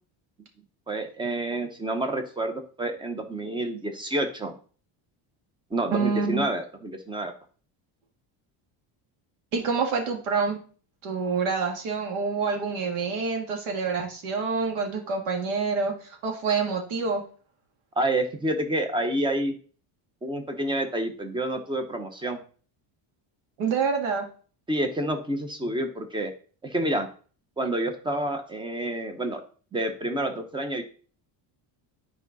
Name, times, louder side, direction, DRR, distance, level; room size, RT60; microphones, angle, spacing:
voice 1, 0.9-4.5 5.7-7.3 18.0-19.5 20.2-22.4 24.7-26.3 26.6-27.1 27.6-29.4 29.7-30.8, right 1 dB, 10° right, 6 dB, 0.8 m, -28 dB
voice 2, 5.9-6.5 9.5-10.6 11.0-17.2 23.6-24.3, right 5 dB, 70° right, 3 dB, 2.1 m, -27 dB
9.7 x 4.8 x 4.0 m, 0.41 s
cardioid pair, 170°, 49 cm